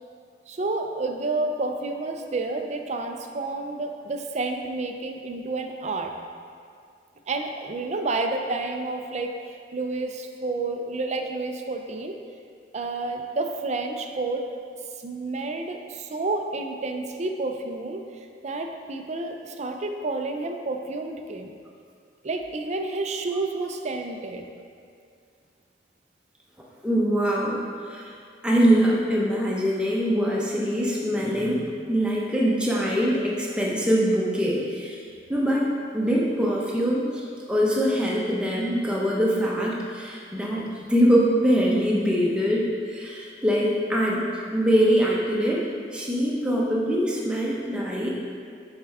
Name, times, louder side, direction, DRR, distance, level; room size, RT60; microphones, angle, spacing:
voice 1, 0.5-6.1 7.3-9.3 9.7-12.2 12.7-14.4 15.0-21.5 22.2-24.4, right 3 dB, 40° right, 4 dB, 0.4 m, -30 dB
voice 2, 26.8-27.6 27.9-28.1 28.4-35.0 35.3-35.7 35.9-40.6 40.9-45.7 45.9-48.1, equal, 5° right, -4 dB, 0.8 m, -23 dB
6.8 x 4.4 x 3.5 m, 2.3 s
head